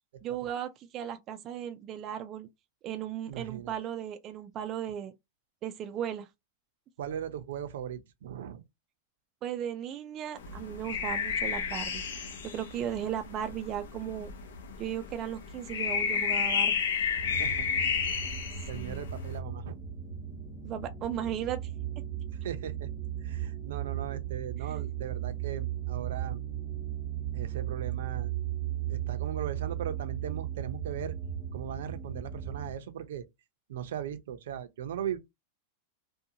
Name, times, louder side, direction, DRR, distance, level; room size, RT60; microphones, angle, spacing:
voice 1, 0.2-2.5 2.8-5.1 5.6-6.3 9.4-14.3 14.8-16.8 18.7-19.0 20.6-21.6 24.6-24.8, right 10 dB, 25° right, 0.3 m, -36 dB
voice 2, 3.3-3.7 7.0-8.6 17.3-17.7 18.1-18.3 18.7-19.8 22.4-22.9 23.2-26.4 27.3-28.3 28.9-31.1 31.5-33.3 33.7-35.2, right 9 dB, 80° right, 0.5 m, -38 dB
sound 1, 10.4-19.4, left 6 dB, 85° left, 0.7 m, -32 dB
sound 2, 17.1-32.7, right 10 dB, 10° left, 0.7 m, -36 dB
2.5 x 2.2 x 2.7 m
supercardioid pair, 160°, 0 cm